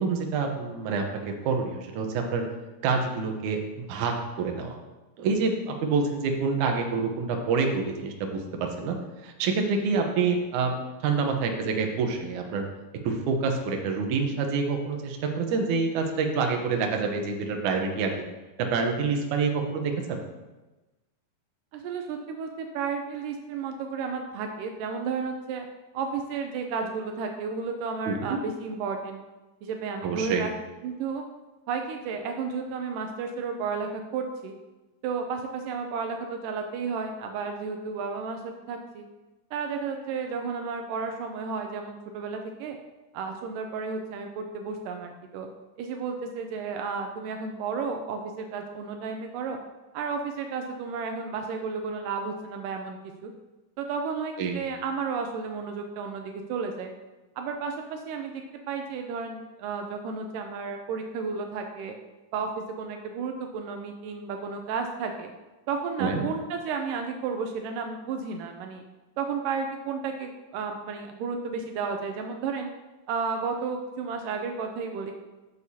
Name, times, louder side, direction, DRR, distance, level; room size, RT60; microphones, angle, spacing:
voice 1, 0.0-2.4 2.8-4.8 5.2-9.0 9.2-10.7 11.0-12.7 13.0-18.2 18.6-20.2 28.1-28.4 30.0-30.4 54.4-54.6 66.0-66.3, right 4 dB, 75° right, 3 dB, 1.8 m, -27 dB
voice 2, 21.7-25.7 25.9-29.2 29.6-30.5 30.8-31.2 31.7-34.5 35.0-39.0 39.5-42.8 43.1-45.5 45.8-49.6 49.9-53.3 53.8-56.9 57.4-61.9 62.3-65.3 65.7-68.8 69.2-72.7 73.1-75.1, right 5 dB, 90° right, 4 dB, 1.9 m, -32 dB
13.0 x 6.5 x 2.8 m, 1.1 s
omnidirectional pair, 4.6 m